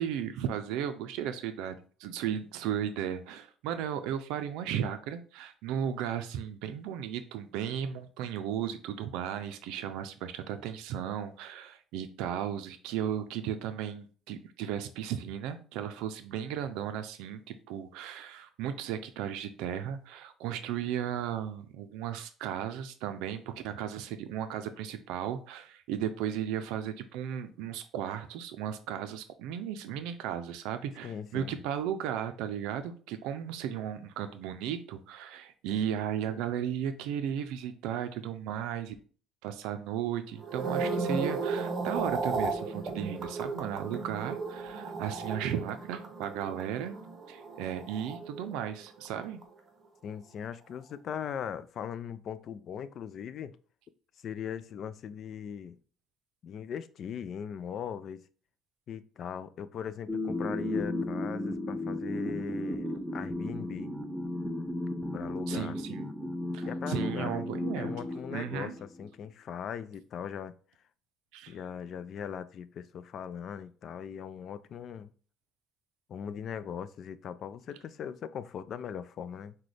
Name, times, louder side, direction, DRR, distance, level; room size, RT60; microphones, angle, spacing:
voice 1, 0.0-39.0 39.4-47.0 47.3-49.4 65.5-66.1 66.5-67.9 68.3-68.8 71.3-71.5, right 9 dB, 85° right, 0.4 m, -35 dB
voice 2, 31.0-31.5 50.0-53.6 54.2-55.8 56.4-58.2 58.9-63.9 65.1-65.8 66.7-67.4 67.8-70.5 71.5-75.1 76.1-79.5, left 8 dB, 50° left, 0.3 m, -39 dB
sound 1, 40.4-48.8 49.0-49.4, right 4 dB, 40° right, 0.8 m, -35 dB
sound 2, 60.1-69.1, left 1 dB, ahead, 0.5 m, -34 dB
6.1 x 2.2 x 3.3 m
cardioid pair, 110°, 0 cm